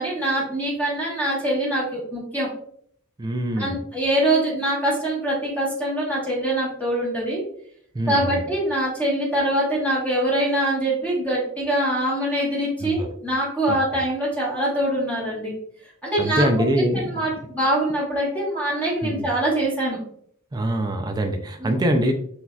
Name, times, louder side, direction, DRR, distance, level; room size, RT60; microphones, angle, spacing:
voice 1, 0.0-2.5 3.6-7.4 8.1-15.5 16.0-16.5 16.9-20.0 21.6-21.8, right 1 dB, 10° left, -6 dB, 1.3 m, -24 dB
voice 2, 3.2-3.8 7.9-8.4 12.8-13.1 13.7-13.8 16.2-17.0 19.0-19.3 20.5-22.1, right 1 dB, 20° right, 5 dB, 0.3 m, -24 dB
6.0 x 2.7 x 2.3 m, 0.64 s
head